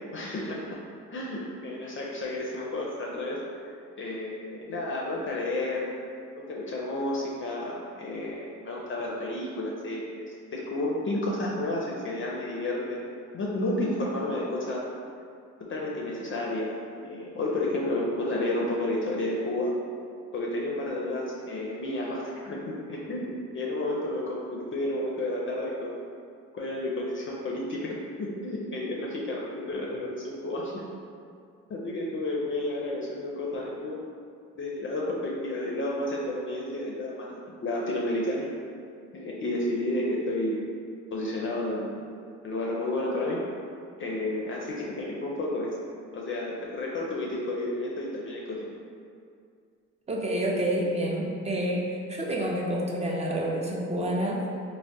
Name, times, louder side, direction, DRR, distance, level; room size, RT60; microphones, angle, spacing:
voice 1, 0.1-0.8 1.1-3.4 4.0-5.9 6.3-10.3 10.5-13.0 13.3-14.8 15.6-19.7 20.3-26.0 26.5-30.8 31.7-34.0 34.6-38.5 39.1-40.6 41.1-42.0 42.4-43.4 44.0-45.7 46.1-48.7, left 1 dB, 45° left, -3 dB, 0.4 m, -31 dB
voice 2, 50.1-51.8 52.1-54.4, right 1 dB, 20° right, -2 dB, 0.5 m, -28 dB
3.3 x 2.1 x 2.6 m, 2.3 s
cardioid pair, 90°, 30 cm